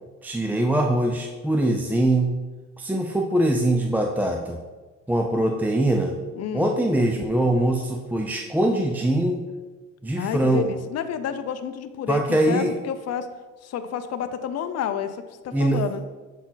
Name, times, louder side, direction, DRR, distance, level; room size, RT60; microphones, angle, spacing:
voice 1, 0.2-2.3 2.8-4.6 5.1-6.2 6.5-9.4 10.0-10.7 12.1-12.7 15.5-15.8, right 1 dB, 5° right, 2 dB, 0.4 m, -22 dB
voice 2, 6.4-6.7 10.2-13.3 13.6-16.0, left 8 dB, 55° left, 9 dB, 0.5 m, -30 dB
7.1 x 4.2 x 3.9 m, 1.3 s
cardioid pair, 90°, 30 cm